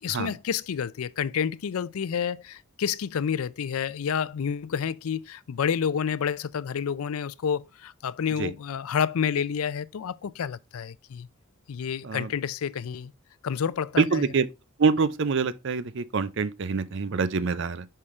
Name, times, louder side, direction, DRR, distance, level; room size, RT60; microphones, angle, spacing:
voice 1, 0.0-11.3 11.7-13.1 13.4-14.2, left 7 dB, 75° left, 0.4 m, -29 dB
voice 2, 14.0-14.5 14.8-17.9, right 5 dB, 55° right, 0.5 m, -25 dB
5.6 x 5.0 x 4.3 m
head